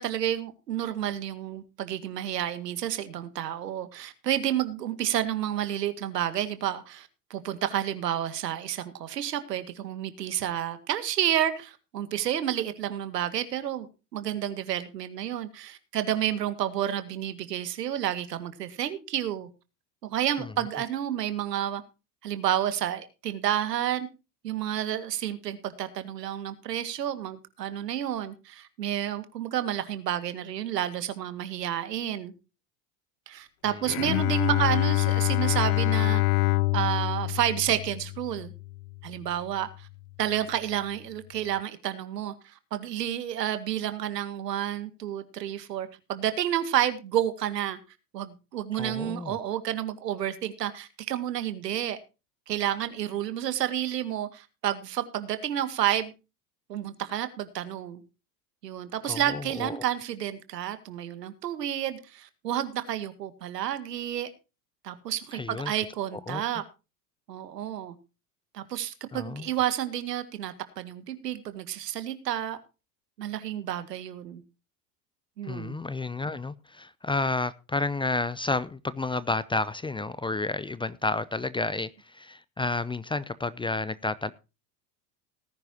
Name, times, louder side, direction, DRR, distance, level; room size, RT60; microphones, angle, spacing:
voice 1, 0.0-13.9 14.1-19.5 20.0-21.8 22.2-24.1 24.4-32.3 33.3-36.2 36.7-38.5 39.0-39.9 40.2-47.8 48.1-52.0 52.5-56.1 56.7-58.0 58.6-64.3 64.8-66.6 67.3-67.9 68.5-72.6 73.2-74.4 75.4-75.8, right 11 dB, 85° right, 2.1 m, -30 dB
voice 2, 33.7-34.2 48.7-49.4 59.0-59.8 65.3-65.7 66.1-66.4 69.1-69.5 75.4-84.3, left 3 dB, 10° left, 0.6 m, -31 dB
Bowed string instrument, 33.8-39.1, left 20 dB, 70° left, 0.6 m, -26 dB
19.0 x 10.5 x 2.9 m
hypercardioid pair, 90°, 48 cm